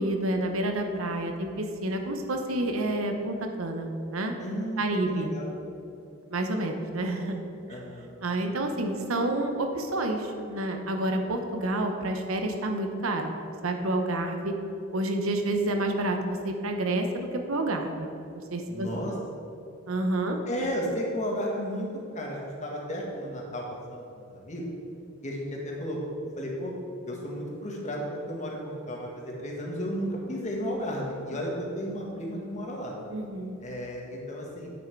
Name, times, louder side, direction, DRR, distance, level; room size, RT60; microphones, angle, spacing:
voice 1, 0.0-4.3 4.8-5.3 6.3-7.4 7.7-7.8 8.2-13.3 13.6-14.5 14.9-18.1 18.5-18.9 19.9-20.4 33.1-33.6, right 1 dB, 90° right, 4 dB, 0.9 m, -29 dB
voice 2, 4.4-5.5 7.7-8.1 18.7-19.1 20.5-21.9 22.1-23.6 23.9-24.6 25.2-26.0 26.4-26.7 27.0-32.9 33.6-34.7, equal, 35° left, -2 dB, 1.6 m, -33 dB
9.2 x 6.4 x 4.6 m, 2.7 s
head